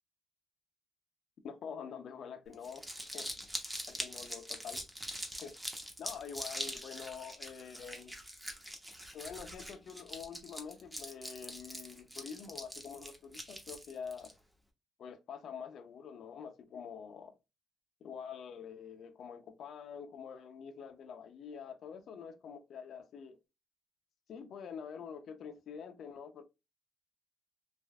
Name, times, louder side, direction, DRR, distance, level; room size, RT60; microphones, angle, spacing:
voice 1, 1.4-2.8 3.1-3.3 3.9-4.8 5.4-5.5 6.0-8.1 9.1-14.3 15.0-17.3 18.0-23.4 24.3-26.4, left 7 dB, 65° left, 0.6 m, -46 dB
Crumpling crinkling, 2.5-14.3, equal, 10° right, 0.8 m, -43 dB
3.4 x 2.5 x 2.3 m
cardioid pair, 90°, 0 cm